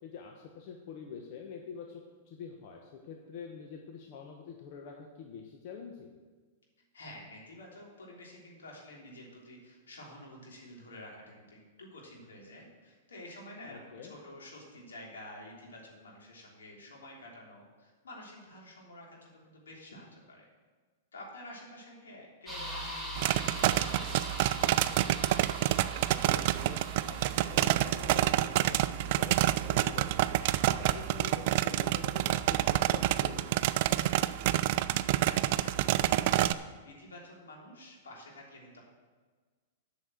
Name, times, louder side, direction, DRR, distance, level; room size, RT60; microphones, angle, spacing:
voice 1, 0.0-6.2 13.7-14.1 26.2-26.8 27.1-30.2 30.7-33.7, left 6 dB, 55° left, 2 dB, 1.1 m, -46 dB
voice 2, 6.9-20.5 21.1-23.3 23.5-24.2 34.7-38.8, left 1 dB, 90° left, -2 dB, 3.3 m, -50 dB
sound 1, 22.5-27.5, equal, 10° left, 2.9 m, -42 dB
sound 2, 23.2-36.5, right 14 dB, 55° right, 0.4 m, -28 dB
sound 3, 27.1-32.9, right 3 dB, 30° left, 2.7 m, -53 dB
8.0 x 6.4 x 7.8 m, 1.4 s
hypercardioid pair, 120°, 0 cm